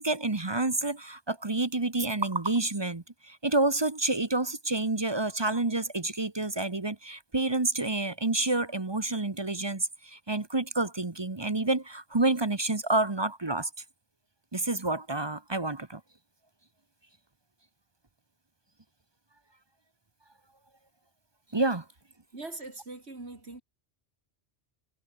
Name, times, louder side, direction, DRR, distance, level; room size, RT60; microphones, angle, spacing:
voice 1, 0.0-13.7 14.5-16.0 21.5-21.8, right 2 dB, 25° right, 1.1 m, -29 dB
voice 2, 22.3-23.6, right 2 dB, 70° right, 4.0 m, -41 dB
omnidirectional pair, 1.1 m